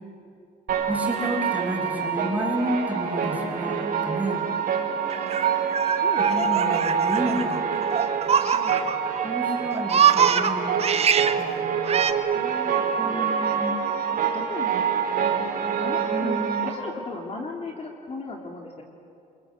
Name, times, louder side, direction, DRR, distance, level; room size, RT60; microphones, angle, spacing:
sound 1, 0.7-16.7, right 7 dB, 60° right, 4.4 m, -26 dB
voice 1, 0.9-4.9 6.2-7.6 9.2-10.9 11.4-11.8 13.0-13.8 16.1-16.6, right 1 dB, 10° right, 1 dB, 5.5 m, -31 dB
Laughter, 5.1-9.2 9.5-11.4 11.9-12.1, right 7 dB, 35° right, 1.2 m, -24 dB
voice 2, 6.0-7.1 7.7-8.9 9.8-10.3 12.3-13.4 14.1-14.9 15.8-18.8, left 3 dB, 35° left, 1 dB, 3.2 m, -38 dB
28.5 x 23.5 x 7.8 m, 2.5 s
cardioid pair, 110°, 17 cm